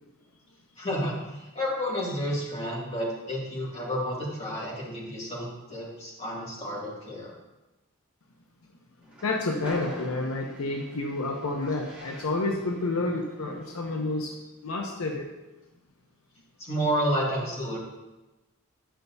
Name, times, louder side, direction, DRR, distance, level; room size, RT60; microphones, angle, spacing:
voice 1, 0.8-7.3 16.6-17.8, equal, 30° left, -6 dB, 2.2 m, -30 dB
Train, 9.0-14.3, left 1 dB, 5° right, 2.0 m, -46 dB
voice 2, 9.2-14.4 14.6-15.3, left 2 dB, 80° left, 2 dB, 0.8 m, -29 dB
11.5 x 5.7 x 2.7 m, 1.1 s
head